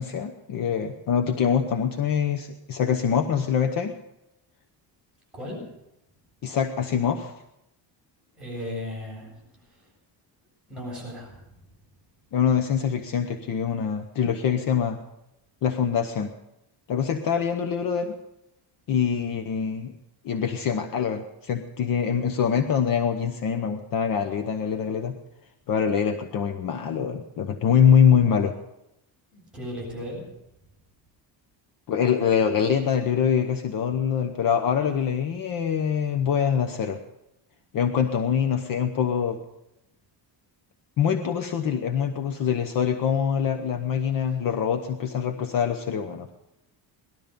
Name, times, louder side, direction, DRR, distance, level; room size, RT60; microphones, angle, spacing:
voice 1, 0.0-3.9 6.4-7.3 12.3-15.0 15.6-16.3 16.9-18.2 18.9-19.9 20.2-25.1 25.7-28.5 31.9-37.0 37.7-39.4 41.0-46.3, left 7 dB, 50° left, 6 dB, 1.0 m, -24 dB
voice 2, 8.4-9.9 10.7-11.5 29.3-30.2, left 1 dB, ahead, -5 dB, 7.9 m, -36 dB
19.0 x 12.5 x 5.3 m, 0.88 s
cardioid pair, 175°, 44 cm